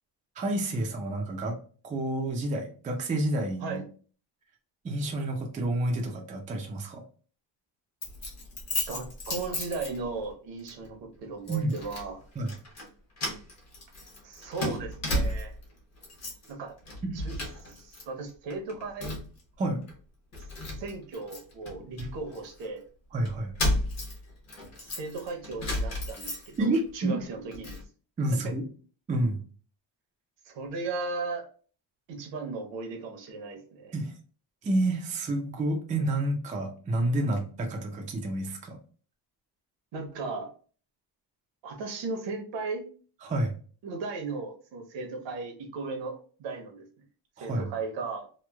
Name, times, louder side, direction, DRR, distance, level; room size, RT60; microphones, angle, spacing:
voice 1, 0.4-1.5 1.8-3.8 4.8-7.0 11.5-11.7 12.4-12.5 17.0-17.2 19.6-19.8 22.0-22.1 23.1-23.5 26.6-27.2 28.2-28.6 29.1-29.4 33.9-34.1 34.6-38.8 43.2-43.5 47.4-47.7, right 1 dB, 20° right, 2 dB, 0.3 m, -29 dB
Keys jangling, 8.0-10.3 10.7-10.9 11.5-12.1 12.4-12.9 13.2-15.6 16.0-16.5 16.8-18.0 18.3-19.4 19.9-20.0 20.3-22.7 23.2-26.8 27.2-27.8, left 1 dB, 35° left, 0.9 m, -34 dB
voice 2, 8.9-12.2 14.2-15.5 16.5-16.8 17.1-17.4 17.6-19.2 20.4-20.5 20.8-22.8 24.8-27.8 28.3-28.6 30.4-31.5 32.1-33.9 39.9-40.5 41.6-42.9 43.8-46.9 47.4-48.3, right 3 dB, 75° right, 4 dB, 0.8 m, -36 dB
3.0 x 2.1 x 2.2 m, 0.40 s
cardioid pair, 145°, 45 cm